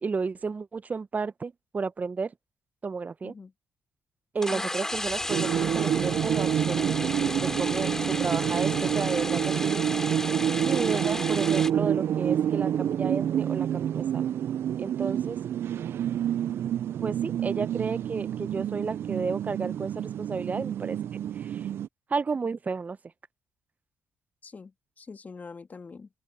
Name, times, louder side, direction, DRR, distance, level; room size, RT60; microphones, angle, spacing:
voice 1, 0.0-2.3 2.8-3.3 4.3-7.0 7.4-9.9 10.6-14.3 14.8-15.4 17.0-21.0 21.4-21.7 22.1-23.0, right 4 dB, 35° right, 0.8 m, -32 dB
sound 1, 4.4-11.7, left 1 dB, 10° left, 3.0 m, -33 dB
sound 2, 5.3-21.9, right 10 dB, 65° right, 0.4 m, -28 dB
voice 2, 24.4-26.1, left 4 dB, 40° left, 2.6 m, -44 dB
open air
hypercardioid pair, 50°, 4 cm